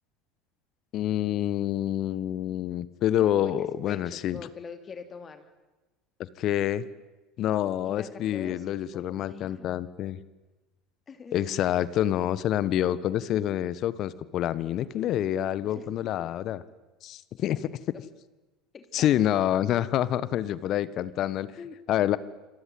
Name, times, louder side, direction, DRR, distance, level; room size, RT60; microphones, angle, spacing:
voice 1, 0.9-4.4 6.4-6.8 7.4-10.2 11.3-16.6 17.0-17.6 18.9-21.5 21.9-22.2, left 12 dB, 50° left, 17 dB, 1.5 m, -27 dB
voice 2, 3.4-5.5 7.8-9.7 11.1-12.3 15.7-15.9 16.2-16.3 18.7-19.3 21.6-21.7, left 5 dB, 30° left, 8 dB, 2.9 m, -45 dB
27.5 x 26.5 x 8.0 m, 1.1 s
figure-of-eight pair, 70°, 0 cm